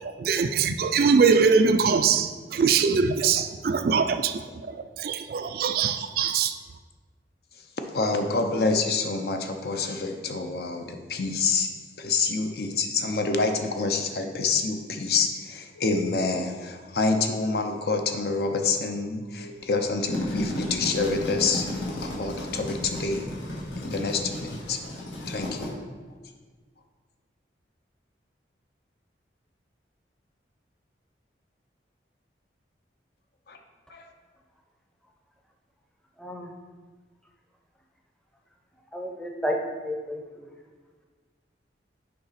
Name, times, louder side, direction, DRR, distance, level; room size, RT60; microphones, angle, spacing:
voice 1, 0.0-4.4 4.7-6.5, right 5 dB, 50° right, 8 dB, 0.3 m, -22 dB
voice 2, 7.9-11.7 12.0-21.7 21.9-23.2 23.7-25.7 33.5-33.6 33.9-34.1, left 4 dB, 55° left, 5 dB, 0.6 m, -27 dB
sound 1, 19.9-25.7, left 1 dB, 80° left, 1.6 m, -34 dB
voice 3, 36.2-36.5 38.9-39.6 39.8-40.5, equal, 5° left, 1 dB, 0.6 m, -32 dB
6.7 x 4.8 x 4.1 m, 1.4 s
head